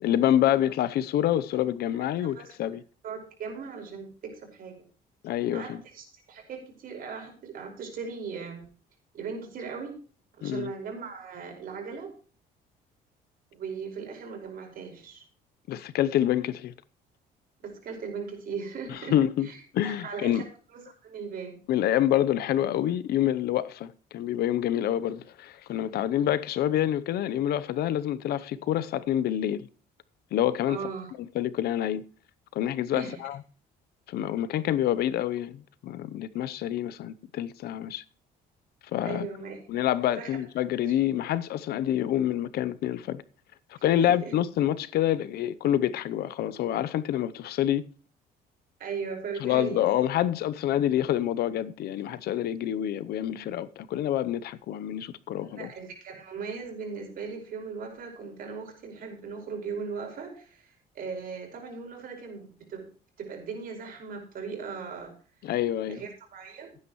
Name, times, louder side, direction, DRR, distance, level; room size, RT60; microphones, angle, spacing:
voice 1, 0.0-2.8 5.2-5.8 10.4-10.7 15.7-16.7 18.9-19.5 19.7-20.4 21.7-29.7 30.3-30.8 31.3-32.0 32.5-33.4 34.1-38.0 38.9-39.3 39.7-43.2 43.8-47.8 49.4-55.7 65.4-66.0, left 11 dB, 70° left, 0.7 m, -27 dB
voice 2, 3.0-4.7 5.5-8.6 9.1-9.9 10.4-12.1 13.5-15.2 17.6-19.2 19.4-20.5 20.7-21.6 30.7-31.1 32.9-33.2 39.0-39.6 40.2-40.3 43.8-44.3 48.8-49.9 55.4-62.9 63.2-65.1 65.9-66.8, right 5 dB, 60° right, 5.2 m, -38 dB
16.5 x 9.6 x 3.1 m
cardioid pair, 110°, 17 cm